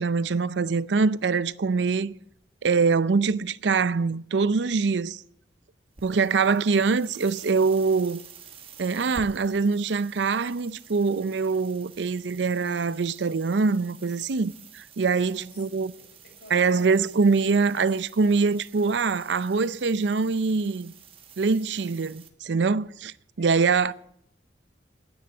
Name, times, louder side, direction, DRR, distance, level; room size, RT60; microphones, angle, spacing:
voice 1, 0.0-2.1 2.6-5.2 6.0-8.2 8.8-15.9 16.5-20.9 21.4-23.9, right 4 dB, 80° right, 0.5 m, -24 dB
sound 1, 5.9-22.3, right 6 dB, 30° right, 1.3 m, -49 dB
voice 2, 15.2-17.8 23.3-23.9, left 1 dB, 65° left, 6.2 m, -52 dB
11.0 x 9.7 x 9.9 m
head